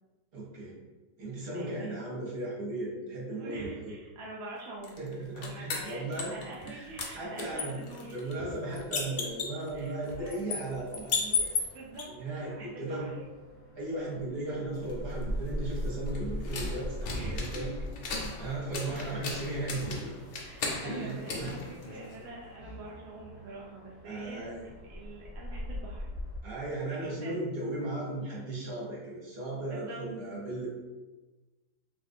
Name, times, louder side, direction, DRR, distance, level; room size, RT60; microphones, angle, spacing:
voice 1, 0.3-0.8 1.2-4.0 5.0-6.4 6.6-7.7 8.1-11.5 12.1-13.1 13.8-17.7 18.4-20.2 20.8-21.5 22.6-22.7 24.0-24.6 26.4-30.7, right 2 dB, 45° right, -5 dB, 0.9 m, -36 dB
voice 2, 1.5-1.9 3.3-5.0 5.4-8.5 9.7-10.4 11.6-12.1 12.4-13.1 17.1-17.7 19.0-19.2 20.4-21.6 21.9-26.1 26.9-27.3 29.7-30.0, right 2 dB, 80° right, -4 dB, 0.6 m, -45 dB
sound 1, 4.8-6.7 7.0-12.0 14.8-22.3, left 3 dB, 80° left, 0.6 m, -36 dB
sound 2, 10.5-26.4, left 1 dB, 10° right, 0.7 m, -43 dB
3.4 x 2.4 x 2.6 m, 1.2 s
omnidirectional pair, 1.8 m